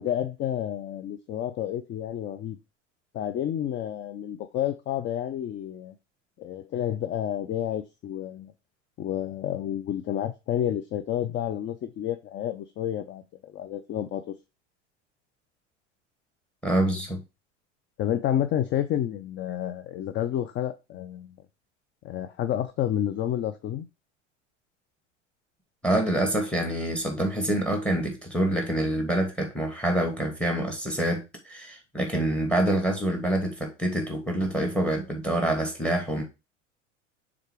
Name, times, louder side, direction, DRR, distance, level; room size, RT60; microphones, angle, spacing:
voice 1, 0.0-2.6 3.1-5.9 6.4-8.5 9.0-14.3 18.0-21.4 22.0-23.9, left 11 dB, 30° left, 0.6 m, -30 dB
voice 2, 16.6-17.2 25.8-36.2, right 1 dB, 5° left, 2.5 m, -26 dB
6.6 x 3.9 x 4.7 m
figure-of-eight pair, 80°, 37 cm